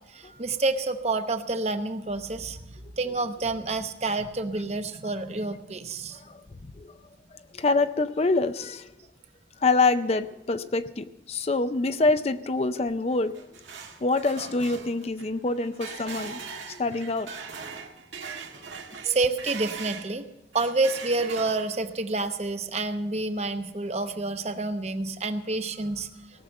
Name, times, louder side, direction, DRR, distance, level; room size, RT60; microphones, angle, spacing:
voice 1, 0.1-2.6 3.0-6.2 19.0-20.3 20.5-26.1, right 3 dB, 35° right, 8 dB, 0.8 m, -28 dB
voice 2, 7.3-8.9 9.6-13.3 14.0-17.3 18.2-18.4 19.1-19.2, left 3 dB, 35° left, 11 dB, 0.4 m, -26 dB
sound 1, 13.1-20.1 20.5-21.9, right 5 dB, 90° right, 1.7 m, -40 dB
18.0 x 6.8 x 7.6 m, 0.89 s
head